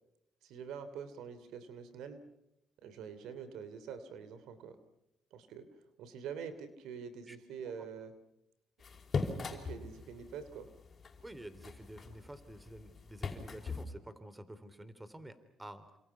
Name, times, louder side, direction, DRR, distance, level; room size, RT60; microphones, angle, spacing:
voice 1, 0.4-2.2 2.8-4.8 5.3-5.7 6.0-8.1 9.5-10.7, right 7 dB, 90° right, 12 dB, 3.0 m, -45 dB
sound 1, 8.8-13.8, left 4 dB, 45° left, 5.4 m, -41 dB
voice 2, 11.2-15.8, right 1 dB, 15° right, 13 dB, 3.3 m, -49 dB
28.5 x 27.0 x 5.8 m, 0.88 s
cardioid pair, 90°, 0 cm